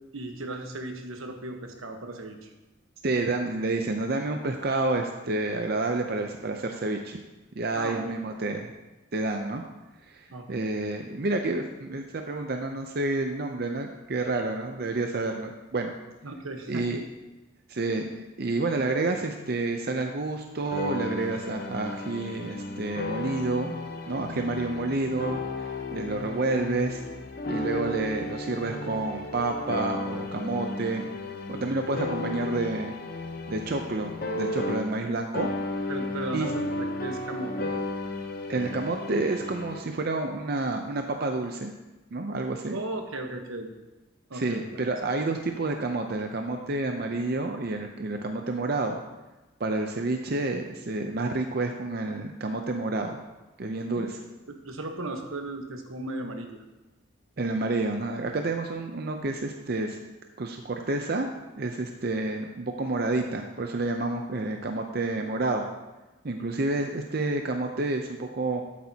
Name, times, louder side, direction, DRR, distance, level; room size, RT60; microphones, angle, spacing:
voice 1, 0.1-2.5 7.7-8.2 10.3-10.7 16.2-17.0 35.9-37.7 42.7-43.7 44.3-44.7 53.9-54.0 54.5-56.6 66.4-66.5, right 2 dB, 85° right, 4 dB, 1.2 m, -36 dB
voice 2, 3.0-7.2 7.6-8.7 9.1-9.6 10.1-15.9 16.7-17.0 17.7-23.8 24.1-27.0 27.5-31.1 31.5-33.0 33.5-35.5 36.3-36.5 38.5-41.7 42.1-42.8 44.3-49.0 49.6-53.2 53.6-54.2 57.4-60.0 60.4-61.3 61.6-65.7 66.2-68.6, right 2 dB, 50° right, 4 dB, 0.6 m, -29 dB
sound 1, 20.7-35.1 35.3-39.8, left 2 dB, 45° left, 0.8 m, -34 dB
12.0 x 8.3 x 2.8 m, 1.1 s
head